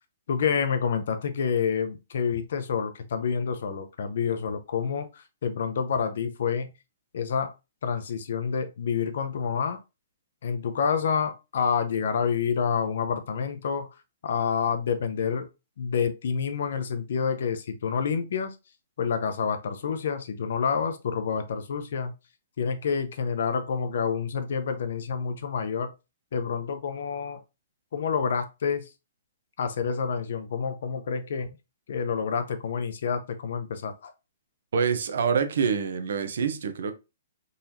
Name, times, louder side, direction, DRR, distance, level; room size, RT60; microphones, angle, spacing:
voice 1, 0.3-6.7 7.1-7.5 7.8-9.8 10.4-13.9 14.2-15.5 15.8-18.6 19.0-22.1 22.6-25.9 26.3-27.4 27.9-28.9 29.6-31.6 31.9-34.1, left 6 dB, 55° left, 0.6 m, -28 dB
voice 2, 34.7-36.9, right 6 dB, 60° right, 0.6 m, -26 dB
3.9 x 3.0 x 2.7 m
hypercardioid pair, 180°, 0 cm